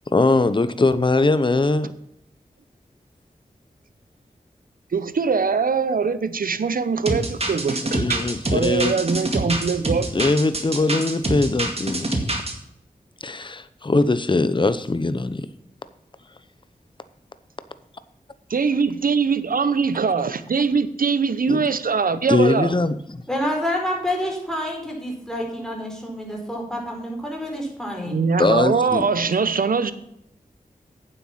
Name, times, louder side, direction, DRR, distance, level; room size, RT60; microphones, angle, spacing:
voice 1, 0.1-1.9 7.9-9.0 10.1-12.3 13.2-15.5 21.5-21.6 22.3-23.2 28.4-29.1, left 3 dB, 35° left, 0.8 m, -21 dB
voice 2, 4.9-8.2 8.5-10.1 18.5-22.7 28.1-29.9, right 5 dB, 70° right, 0.8 m, -22 dB
sound 1, 7.1-12.5, right 1 dB, 45° right, 2.1 m, -26 dB
voice 3, 23.3-28.2, left 1 dB, 5° left, 4.5 m, -28 dB
9.1 x 7.8 x 5.7 m
cardioid pair, 50°, 15 cm